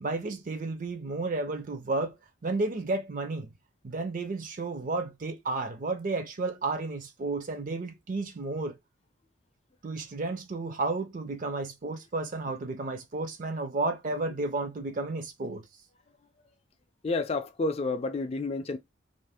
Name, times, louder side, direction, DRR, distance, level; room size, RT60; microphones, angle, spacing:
voice 1, 0.0-2.2 2.4-3.5 3.8-8.8 9.8-15.6, right 3 dB, 40° right, 0.5 m, -32 dB
voice 2, 17.0-18.8, left 3 dB, 30° left, 0.3 m, -30 dB
2.5 x 2.4 x 3.4 m
head